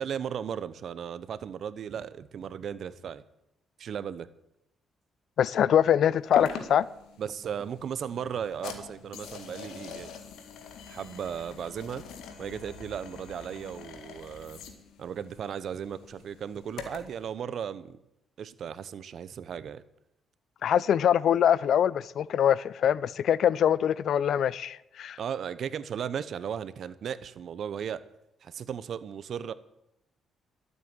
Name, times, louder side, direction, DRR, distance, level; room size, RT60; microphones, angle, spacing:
voice 1, 0.0-3.2 3.8-4.3 7.2-10.1 10.9-12.0 12.4-14.6 15.0-18.0 18.4-19.8 25.2-28.0 28.4-29.5, right 8 dB, 60° right, 0.9 m, -36 dB
voice 2, 5.4-6.9 20.6-25.2, left 9 dB, 65° left, 0.5 m, -24 dB
sound 1, 6.3-17.2, left 6 dB, 85° left, 2.0 m, -43 dB
12.5 x 8.3 x 9.0 m
cardioid pair, 90°, 0 cm